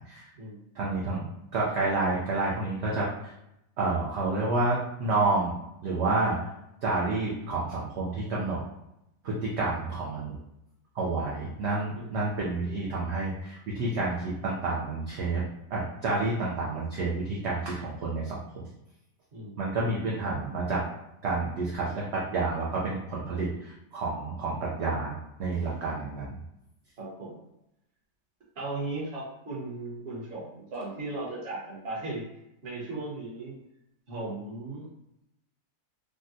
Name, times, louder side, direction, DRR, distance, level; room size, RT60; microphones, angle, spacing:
voice 1, 0.8-1.2 1.5-3.3 3.8-5.5 5.8-6.4 6.8-8.6 9.2-10.4 10.9-14.1 14.4-15.4 15.7-18.7 19.6-20.8 21.2-25.1 25.4-26.4, right 3 dB, 65° right, -5 dB, 0.7 m, -29 dB
voice 2, 19.3-19.6 20.2-20.3 27.0-27.4 28.5-32.2 32.6-33.5 34.1-34.9, right 2 dB, 40° right, -6 dB, 1.1 m, -37 dB
3.5 x 2.2 x 2.6 m, 0.84 s
omnidirectional pair, 1.7 m